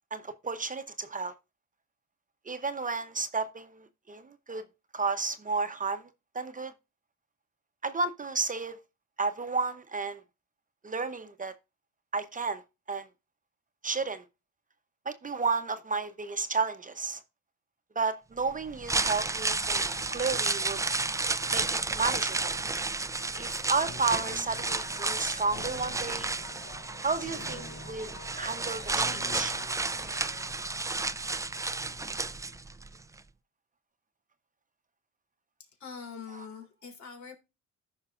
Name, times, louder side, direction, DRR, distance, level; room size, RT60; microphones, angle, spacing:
voice 1, 0.1-1.3 2.5-4.6 4.9-6.1 6.3-6.7 7.8-8.8 9.2-10.2 10.8-11.5 12.1-13.1 13.8-14.2 15.0-17.2 18.0-20.8 21.5-22.6 23.4-26.3 27.0-28.1 28.4-29.5 36.3-36.5, right 4 dB, 25° right, 0.8 m, -32 dB
sound 1, 18.7-32.9 33.2-33.3, right 3 dB, 10° right, 0.4 m, -32 dB
sound 2, 23.3-30.5, left 4 dB, 40° left, 1.3 m, -47 dB
voice 2, 35.8-37.4, left 6 dB, 65° left, 3.3 m, -43 dB
14.5 x 5.5 x 2.5 m
cardioid pair, 90°, 30 cm